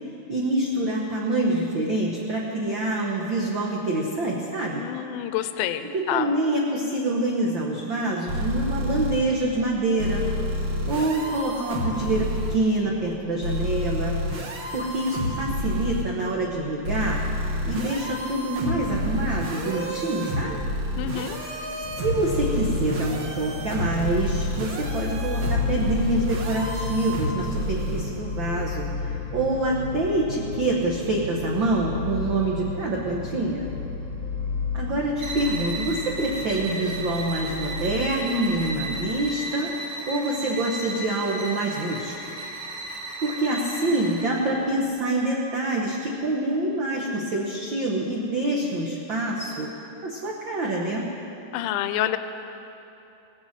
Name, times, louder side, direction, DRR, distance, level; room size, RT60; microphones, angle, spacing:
voice 1, 0.0-4.8 5.9-10.3 10.9-14.2 14.7-17.2 17.7-20.6 22.0-33.7 34.7-42.1 43.2-49.7 50.0-51.1, right 2 dB, 70° right, -2 dB, 1.1 m, -26 dB
voice 2, 4.7-6.3 21.0-21.4 51.5-52.2, left 12 dB, 80° left, 10 dB, 2.0 m, -28 dB
sound 1, 8.3-9.2 10.0-12.6 13.4-16.0 16.8-28.0, equal, 50° right, 1.6 m, -29 dB
sound 2, 21.8-39.1, left 3 dB, 10° right, 2.1 m, -33 dB
sound 3, 35.2-44.5, right 1 dB, 90° right, 3.7 m, -35 dB
17.5 x 8.6 x 7.4 m, 2.9 s
omnidirectional pair, 3.9 m